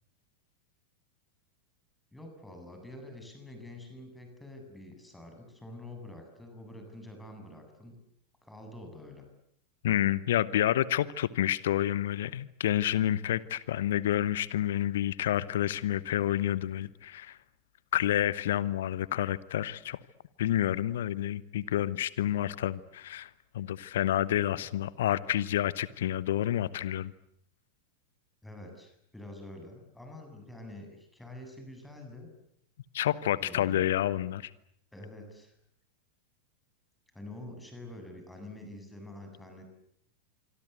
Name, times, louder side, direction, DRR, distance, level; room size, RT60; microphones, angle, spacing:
voice 1, 2.1-8.0 8.4-9.3 15.9-16.2 24.5-24.7 28.4-32.3 33.4-33.9 34.9-35.6 37.1-39.7, left 1 dB, 5° left, 4 dB, 7.9 m, -47 dB
voice 2, 9.8-17.4 17.9-20.0 20.4-27.1 32.9-34.5, left 12 dB, 60° left, 19 dB, 1.1 m, -29 dB
26.0 x 24.5 x 8.2 m, 0.69 s
figure-of-eight pair, 90°, 0 cm